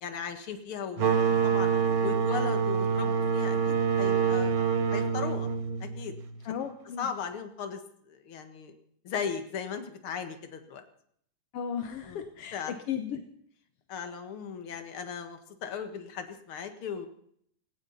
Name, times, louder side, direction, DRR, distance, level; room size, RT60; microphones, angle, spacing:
voice 1, 0.0-1.7 2.0-4.5 4.9-5.5 5.8-6.1 7.0-7.8 8.1-8.8 9.0-10.8 12.0-12.2 12.5-12.8 13.9-17.1, left 7 dB, 50° left, 7 dB, 2.0 m, -37 dB
sound 1, 1.0-6.4, right 6 dB, 55° right, 1.7 m, -26 dB
voice 2, 6.4-7.1 11.5-12.6 12.9-13.2, left 8 dB, 65° left, 6 dB, 1.5 m, -35 dB
18.5 x 17.5 x 4.1 m, 0.67 s
omnidirectional pair, 3.8 m